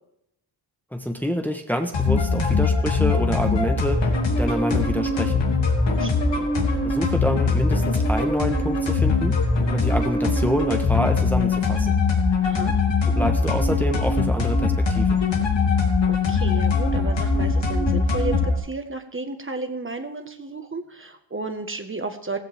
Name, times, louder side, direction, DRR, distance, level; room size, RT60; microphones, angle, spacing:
voice 1, 0.9-5.5 6.8-9.4 9.7-12.0 13.1-15.2, equal, 5° left, 4 dB, 1.3 m, -27 dB
sound 1, 1.9-18.6, left 3 dB, 75° left, 3.2 m, -21 dB
voice 2, 6.0-6.5 12.4-12.7 15.7-15.8 16.1-22.4, right 3 dB, 30° right, 6 dB, 1.5 m, -33 dB
16.5 x 15.0 x 3.6 m, 0.80 s
wide cardioid pair, 95°, 44 cm